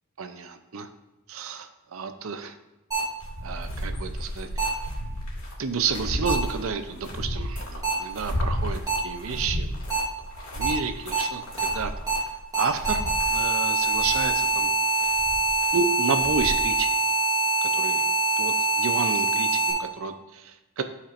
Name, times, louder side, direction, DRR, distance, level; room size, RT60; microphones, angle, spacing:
voice 1, 0.2-0.9 1.3-2.5 3.4-4.7 5.6-9.8 10.5-11.9 12.5-14.7 15.7-16.9 17.7-18.1 18.4-18.5 18.8-20.8, right 5 dB, 70° right, 8 dB, 0.6 m, -31 dB
sound 1, 2.9-3.0 4.6-4.7 6.3-6.4 7.8-7.9 8.9-9.0 9.9-10.0 10.6-10.7 11.1-11.2 11.6-11.7 12.1-12.2 12.5-19.7, right 2 dB, 15° right, 2.0 m, -24 dB
sound 2, 3.2-16.6, equal, 90° left, 2.2 m, -33 dB
11.5 x 4.3 x 2.5 m, 1.0 s
head